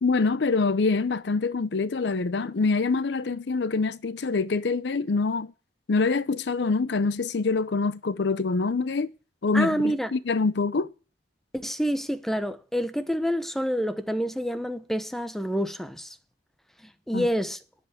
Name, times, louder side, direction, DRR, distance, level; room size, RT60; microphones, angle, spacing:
voice 1, 0.0-5.5 5.9-9.1 9.4-10.9 17.1-17.3, left 4 dB, 65° left, 0.6 m, -25 dB
voice 2, 9.5-10.1 11.5-16.2 17.1-17.6, equal, ahead, 0.9 m, -27 dB
10.0 x 7.6 x 8.3 m
head